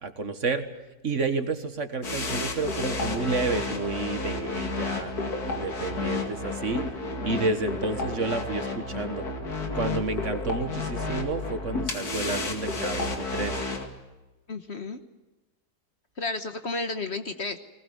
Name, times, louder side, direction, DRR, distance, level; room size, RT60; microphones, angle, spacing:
voice 1, 0.0-0.7 1.0-5.1 5.5-6.9 7.2-9.3 9.7-13.6, right 3 dB, 50° right, 9 dB, 1.7 m, -30 dB
sound 1, 2.0-13.9, left 3 dB, 65° left, 2.8 m, -31 dB
voice 2, 14.5-15.0 16.2-17.6, left 3 dB, 45° left, 9 dB, 1.3 m, -32 dB
20.5 x 20.0 x 9.5 m, 1.1 s
omnidirectional pair, 1.7 m